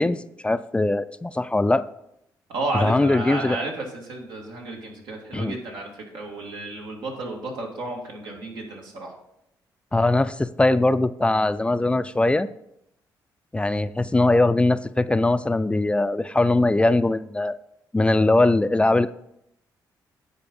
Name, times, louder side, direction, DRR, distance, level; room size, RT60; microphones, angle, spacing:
voice 1, 0.0-1.9 2.8-3.6 5.3-5.6 9.9-12.5 13.5-17.5 17.9-19.1, left 2 dB, 15° left, 13 dB, 0.3 m, -21 dB
voice 2, 2.5-9.1, right 2 dB, 85° right, 0 dB, 2.0 m, -32 dB
9.9 x 4.2 x 5.3 m, 0.79 s
cardioid pair, 85°, 8 cm